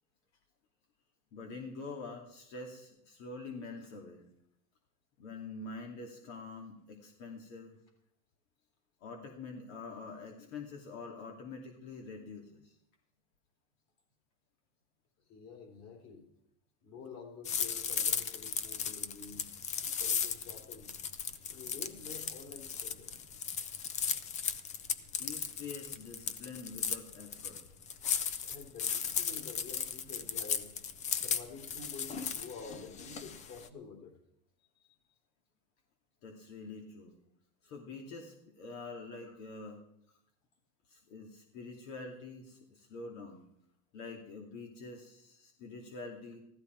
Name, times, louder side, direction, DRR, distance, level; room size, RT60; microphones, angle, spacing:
voice 1, 1.3-4.2 5.2-7.8 9.0-12.8 25.2-27.6 36.2-37.2 37.6-39.8 40.9-43.4 43.9-46.4, left 3 dB, 65° left, 2 dB, 2.7 m, -46 dB
voice 2, 15.3-16.2 16.8-19.5 19.8-20.9 21.5-23.1 28.4-30.7 31.1-34.2 34.8-35.0 39.2-39.4, left 5 dB, 35° left, 4 dB, 3.9 m, -49 dB
sound 1, 17.4-33.7, left 7 dB, 15° left, 0.4 m, -36 dB
15.5 x 13.5 x 4.6 m, 0.75 s
supercardioid pair, 145°, 44 cm